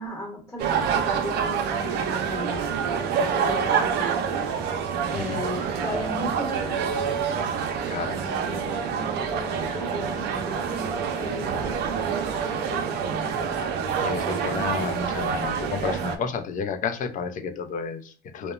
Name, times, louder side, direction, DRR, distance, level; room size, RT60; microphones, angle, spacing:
voice 1, 0.0-4.4 5.1-6.9 7.8-13.5, left 1 dB, 15° left, 1.0 m, -36 dB
sound 1, 0.6-16.2, right 7 dB, 80° right, 0.5 m, -27 dB
voice 2, 7.9-8.2 14.0-18.5, left 6 dB, 50° left, 0.5 m, -31 dB
2.9 x 2.1 x 2.2 m
cardioid pair, 110°, 17 cm